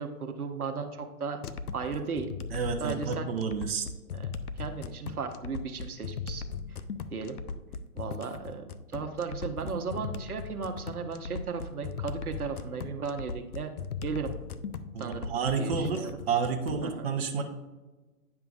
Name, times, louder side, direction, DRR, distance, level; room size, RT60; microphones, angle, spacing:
voice 1, 0.0-1.4 1.7-2.3 2.8-3.3 4.1-4.3 4.6-6.8 7.1-7.4 7.9-13.7 14.0-14.4 15.0-16.1 16.8-17.1, right 5 dB, 75° right, 5 dB, 1.0 m, -36 dB
sound 1, 1.4-16.9, left 5 dB, 85° left, 0.6 m, -38 dB
voice 2, 2.5-3.9 14.9-17.4, right 6 dB, 40° right, 3 dB, 0.8 m, -30 dB
9.6 x 5.8 x 2.5 m, 1.2 s
figure-of-eight pair, 125°, 44 cm